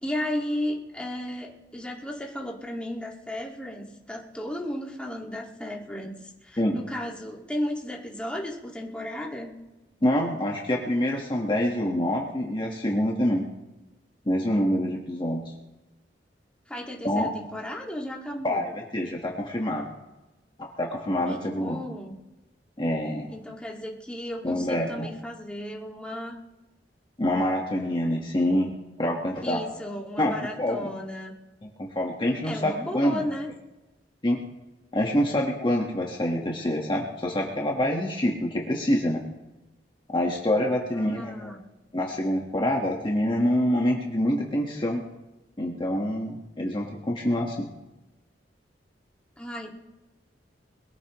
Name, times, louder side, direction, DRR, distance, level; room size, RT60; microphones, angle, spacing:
voice 1, 0.0-9.5 16.7-18.7 21.2-22.2 23.3-26.4 29.4-31.3 32.4-33.5 40.9-41.6 49.4-49.7, left 1 dB, 5° left, -2 dB, 2.0 m, -34 dB
voice 2, 10.0-13.5 14.3-15.4 17.0-17.3 18.4-19.9 20.6-21.8 22.8-23.3 24.4-25.1 27.2-28.7 29.0-29.6 30.2-30.3 30.6-30.9 31.6-33.2 34.2-34.4 34.9-39.2 40.1-41.6 41.9-45.0 45.6-47.7, left 1 dB, 30° left, -1 dB, 1.4 m, -26 dB
22.0 x 14.5 x 3.1 m, 1.0 s
head